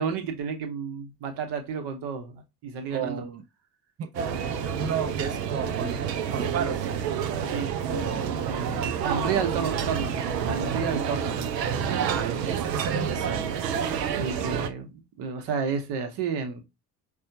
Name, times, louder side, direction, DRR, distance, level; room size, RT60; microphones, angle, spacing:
voice 1, 0.0-3.3 7.5-7.7 8.5-11.5 11.8-12.2 14.2-16.6, right 6 dB, 55° right, 1.2 m, -31 dB
voice 2, 2.9-3.4 4.0-4.3 4.6-6.0 6.3-6.9 7.9-8.3 12.0-13.5, right 6 dB, 30° right, 0.8 m, -33 dB
sound 1, 4.1-14.7, right 7 dB, 80° right, 0.6 m, -29 dB
5.4 x 2.4 x 2.7 m
figure-of-eight pair, 50°, 49 cm